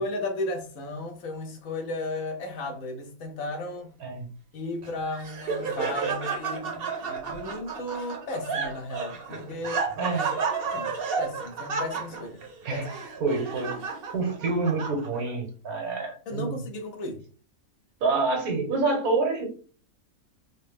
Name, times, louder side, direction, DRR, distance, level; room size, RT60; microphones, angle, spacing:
voice 1, 0.0-3.9 4.5-9.9 10.7-12.4 12.7-12.9 13.2-13.3 16.3-17.2, left 2 dB, 70° left, 1.2 m, -34 dB
Laughter, 4.8-15.4, right 5 dB, 50° right, 0.8 m, -32 dB
voice 2, 10.0-10.3 12.6-12.9 13.2-13.7 14.1-16.6 18.0-19.5, right 3 dB, 80° right, 1.5 m, -27 dB
4.0 x 2.1 x 3.5 m
omnidirectional pair, 1.5 m